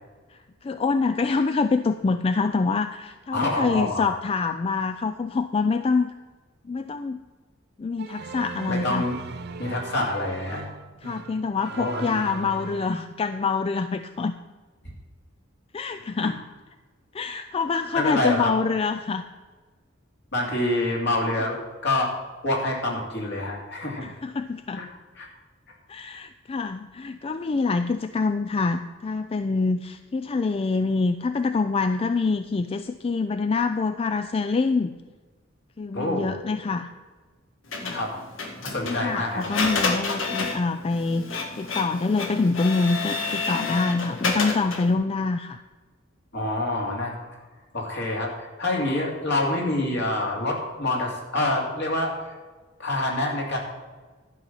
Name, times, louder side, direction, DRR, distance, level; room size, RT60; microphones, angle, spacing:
voice 1, 0.3-6.1 6.7-7.2 7.8-9.0 11.0-14.3 15.7-16.4 17.1-19.2 24.0-24.8 25.9-34.9 35.8-36.9 37.8-38.0 38.8-45.6, left 4 dB, 30° left, 10 dB, 0.3 m, -25 dB
voice 2, 3.3-4.0 8.7-9.2 9.6-10.6 11.8-12.1 16.2-16.3 17.9-18.5 20.3-22.1 22.4-24.1 24.8-24.9 25.2-25.3 35.9-36.3 37.9-38.2 38.6-39.5 46.3-47.2 47.7-52.3 52.8-53.6, left 1 dB, 60° left, -1 dB, 2.7 m, -26 dB
The Queen has arrived, 8.0-13.0, right 5 dB, 55° right, 0.6 m, -38 dB
Printer, 37.7-44.9, left 4 dB, 90° left, 1.7 m, -29 dB
11.5 x 5.4 x 7.4 m, 1.3 s
head